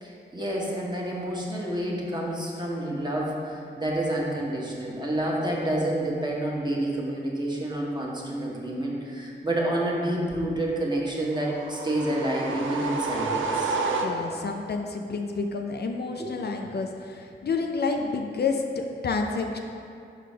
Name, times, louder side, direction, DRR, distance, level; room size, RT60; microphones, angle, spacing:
voice 1, 0.0-13.8 16.2-16.3, right 1 dB, 20° right, -4 dB, 1.4 m, -29 dB
sound 1, 11.4-14.6, right 3 dB, 90° right, 0.5 m, -30 dB
voice 2, 14.0-19.6, left 4 dB, 55° left, 3 dB, 0.5 m, -29 dB
5.4 x 3.9 x 5.0 m, 2.5 s
cardioid pair, 45°, 20 cm